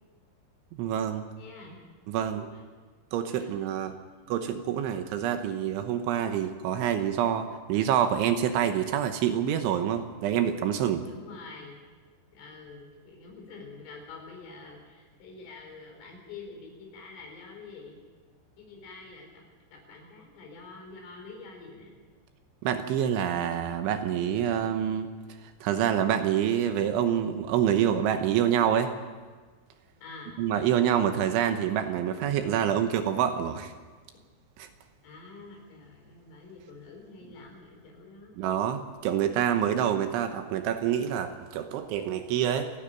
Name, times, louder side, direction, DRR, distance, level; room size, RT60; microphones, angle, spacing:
voice 1, 0.8-1.2 2.1-2.4 3.1-3.9 4.3-11.0 22.6-25.1 25.6-28.9 30.4-33.7 34.6-34.7 38.4-42.7, right 9 dB, 75° right, 7 dB, 3.2 m, -27 dB
voice 2, 1.4-1.8 2.3-2.6 3.4-3.7 4.0-4.3 11.0-11.8 12.3-18.0 18.6-19.4 19.7-21.9 30.0-30.4 35.0-38.4, left 4 dB, 75° left, 1 dB, 7.1 m, -47 dB
28.5 x 11.0 x 9.1 m, 1.4 s
omnidirectional pair, 5.9 m